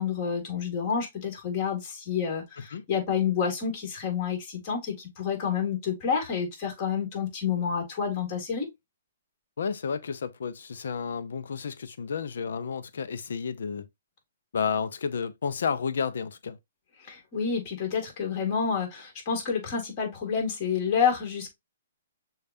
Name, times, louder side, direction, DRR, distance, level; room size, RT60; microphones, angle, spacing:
voice 1, 0.0-8.7 17.0-21.5, left 6 dB, 35° left, 2.0 m, -29 dB
voice 2, 9.6-13.9 14.5-16.6, left 6 dB, 75° left, 0.6 m, -31 dB
6.4 x 2.4 x 2.6 m
hypercardioid pair, 140°, 0 cm